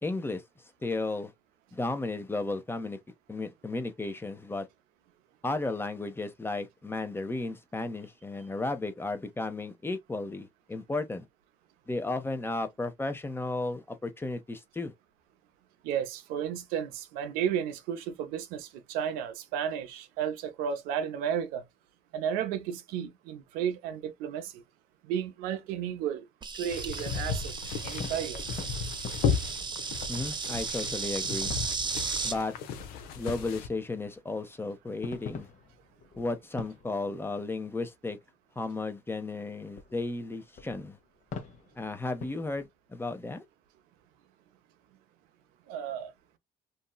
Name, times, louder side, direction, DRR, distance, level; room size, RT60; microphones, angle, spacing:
voice 1, 0.0-0.4 0.8-1.3 1.7-3.0 3.3-4.7 5.4-11.2 11.9-14.9 30.1-31.5 32.2-32.5 33.2-35.5 36.2-38.2 38.6-41.0 41.8-43.4, left 2 dB, 15° left, 0.7 m, -34 dB
voice 2, 15.8-21.6 22.1-24.6 25.0-26.2 26.5-28.4 45.7-46.1, right 8 dB, 85° right, 0.6 m, -33 dB
Insect, 26.4-32.3, right 5 dB, 30° right, 0.7 m, -35 dB
sound 1, 26.7-33.7, left 6 dB, 80° left, 0.6 m, -35 dB
sound 2, 27.8-30.6 31.0-31.1 31.5-32.7 33.3-37.7 38.1-38.3 38.8-38.9 39.4-39.5 39.7-42.7, left 5 dB, 55° left, 0.9 m, -46 dB
2.9 x 2.6 x 2.2 m
supercardioid pair, 80°, 15 cm